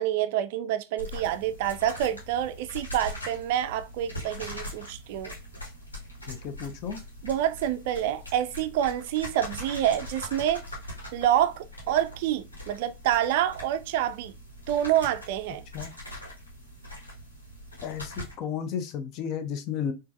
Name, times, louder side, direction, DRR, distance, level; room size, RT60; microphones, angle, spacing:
voice 1, 0.0-5.3 7.2-10.6 11.1-14.3 14.7-15.6, right 11 dB, 50° right, 0.3 m, -27 dB
sound 1, 1.0-18.3, left 1 dB, 80° left, 1.5 m, -42 dB
voice 2, 6.3-7.0 15.7-15.9 17.8-19.9, left 8 dB, 40° left, 0.5 m, -33 dB
4.4 x 2.5 x 2.5 m
figure-of-eight pair, 90°, 0 cm